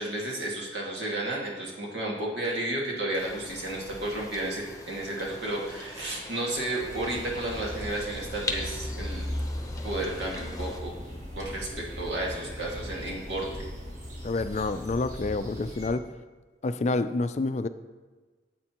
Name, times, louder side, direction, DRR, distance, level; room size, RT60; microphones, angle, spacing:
voice 1, 0.0-9.3 9.8-10.9 11.4-13.7, right 1 dB, 80° right, -2 dB, 2.0 m, -32 dB
sound 1, 3.2-10.8, left 3 dB, 20° left, 0.8 m, -41 dB
sound 2, 6.8-15.9, equal, 45° right, 1.7 m, -38 dB
voice 2, 14.2-16.0 16.6-17.7, left 3 dB, 40° left, 11 dB, 0.4 m, -28 dB
9.6 x 8.0 x 3.0 m, 1.3 s
head